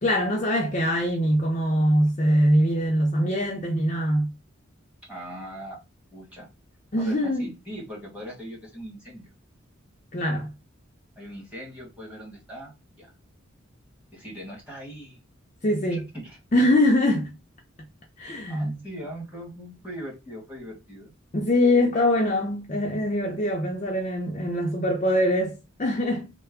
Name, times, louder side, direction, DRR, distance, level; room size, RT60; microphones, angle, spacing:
voice 1, 0.0-4.3 6.9-7.4 10.1-10.5 15.6-16.1 16.5-17.4 18.2-18.8 21.3-26.3, left 1 dB, 35° left, 0.5 m, -23 dB
voice 2, 5.1-5.8 6.1-6.5 7.0-9.3 11.2-13.1 14.1-15.2 15.9-16.4 18.5-21.1 21.8-21.9, equal, 5° right, 1.4 m, -40 dB
3.3 x 2.0 x 3.5 m
head